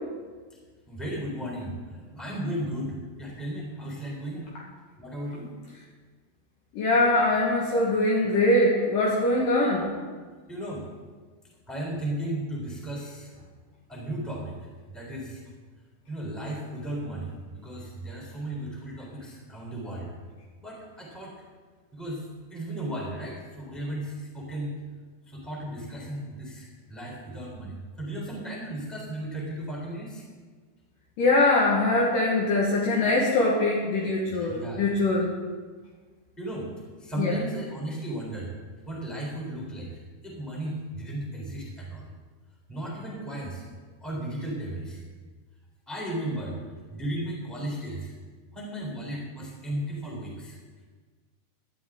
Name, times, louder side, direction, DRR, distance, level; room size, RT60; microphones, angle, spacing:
voice 1, 0.9-4.5 5.0-5.5 10.5-10.9 11.7-13.3 13.9-14.6 14.9-15.4 16.1-20.1 20.6-21.3 21.9-22.2 22.5-24.8 25.3-30.2 34.2-34.8 36.4-36.7 37.0-38.5 38.9-42.1 42.7-43.6 44.0-45.0 45.9-46.6 46.9-48.1 48.5-50.6, right 1 dB, ahead, -4 dB, 3.0 m, -35 dB
voice 2, 6.7-9.9 31.2-35.3 37.2-37.4, left 2 dB, 60° left, -4 dB, 2.8 m, -22 dB
17.5 x 12.0 x 3.8 m, 1.5 s
omnidirectional pair, 4.8 m